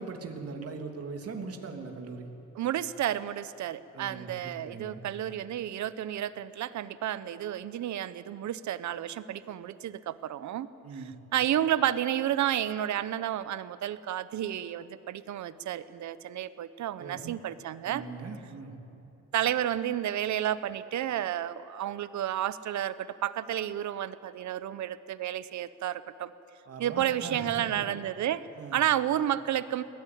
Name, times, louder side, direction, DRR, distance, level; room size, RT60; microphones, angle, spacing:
voice 1, 0.0-2.3 3.9-5.0 10.8-11.1 17.0-17.2 17.8-18.7 26.7-27.9 28.6-28.8, right 4 dB, 50° right, 3 dB, 2.9 m, -40 dB
voice 2, 2.6-10.7 11.3-18.0 19.3-26.3 26.8-28.4 28.7-29.8, right 11 dB, 70° right, 15 dB, 1.0 m, -31 dB
22.0 x 18.0 x 9.5 m, 2.9 s
cardioid pair, 90°, 30 cm